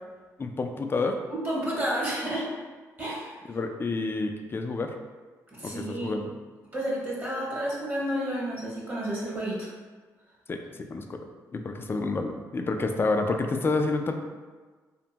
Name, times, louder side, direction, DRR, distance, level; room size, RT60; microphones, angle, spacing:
voice 1, 0.4-1.2 3.5-4.9 5.6-6.3 10.5-10.6 10.9-11.3 11.5-14.1, left 3 dB, 30° left, 5 dB, 0.3 m, -29 dB
voice 2, 1.4-2.5 3.0-3.3 5.6-6.2 6.7-9.7, right 1 dB, 30° right, -6 dB, 1.0 m, -30 dB
2.6 x 2.1 x 2.9 m, 1.4 s
supercardioid pair, 65°, 7 cm